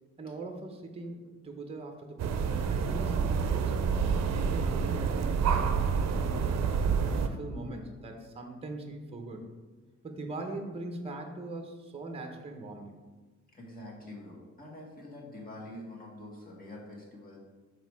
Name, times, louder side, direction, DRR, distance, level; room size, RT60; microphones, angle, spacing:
voice 1, 0.2-9.4 10.0-12.9, right 2 dB, 20° right, 4 dB, 0.8 m, -41 dB
sound 1, 2.2-7.3, right 6 dB, 60° right, 0.6 m, -28 dB
voice 2, 13.5-17.4, left 1 dB, 30° left, -3 dB, 1.7 m, -46 dB
6.3 x 5.0 x 4.7 m, 1.3 s
wide cardioid pair, 175°, 30 cm